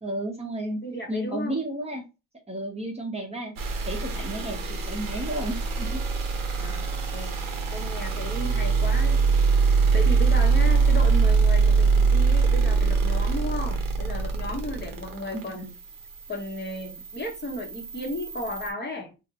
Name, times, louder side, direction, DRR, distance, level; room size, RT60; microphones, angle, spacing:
voice 1, 0.0-0.8 1.1-2.0 2.5-3.5 3.9-6.0 15.3-15.7, right 1 dB, 20° right, 0.7 m, -32 dB
voice 2, 0.8-1.6 6.6-7.4 7.7-9.2 9.9-15.7 16.3-19.1, left 1 dB, 30° left, 0.8 m, -34 dB
sound 1, 3.6-18.7, right 4 dB, 65° right, 0.8 m, -24 dB
2.6 x 2.0 x 2.7 m
cardioid pair, 95°, 36 cm